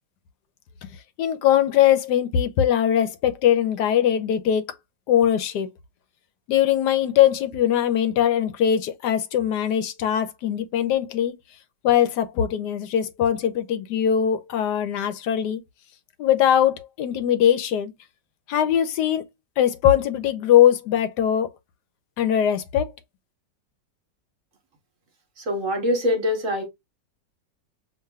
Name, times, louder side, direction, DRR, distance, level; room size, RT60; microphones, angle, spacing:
voice 1, 1.2-4.6 5.1-5.7 6.5-11.3 11.8-15.6 16.2-17.9 18.5-19.2 19.6-21.5 22.2-22.9, left 10 dB, 70° left, 1.3 m, -21 dB
voice 2, 25.5-26.7, left 1 dB, 50° right, 1.4 m, -23 dB
7.2 x 2.6 x 2.3 m
omnidirectional pair, 2.0 m